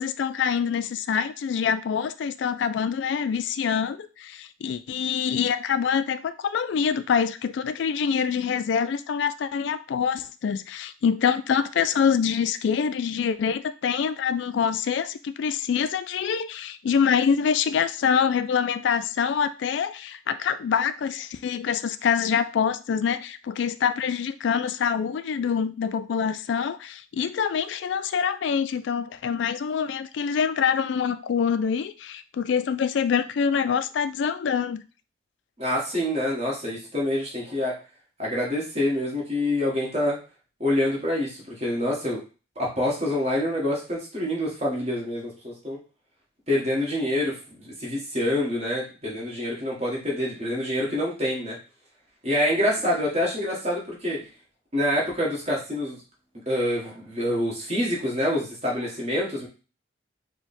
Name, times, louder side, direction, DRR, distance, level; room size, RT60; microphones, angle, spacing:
voice 1, 0.0-34.8, left 7 dB, 70° left, 0.3 m, -25 dB
voice 2, 35.6-37.7 38.2-40.2 40.6-42.2 42.5-45.8 46.5-47.4 47.6-51.6 52.2-54.2 54.7-56.0 56.5-59.5, left 1 dB, 35° right, 1.6 m, -26 dB
4.5 x 2.2 x 4.2 m
head